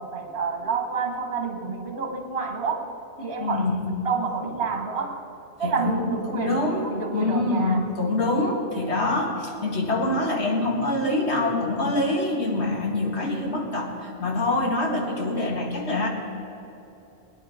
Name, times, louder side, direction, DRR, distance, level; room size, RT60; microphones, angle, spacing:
voice 1, 0.0-2.9 3.2-5.2 5.6-7.8, right 5 dB, 60° right, 3 dB, 1.7 m, -29 dB
voice 2, 3.4-3.9 5.6-16.1, left 2 dB, 80° left, 0 dB, 2.3 m, -25 dB
21.0 x 10.0 x 4.9 m, 3.0 s
omnidirectional pair, 1.1 m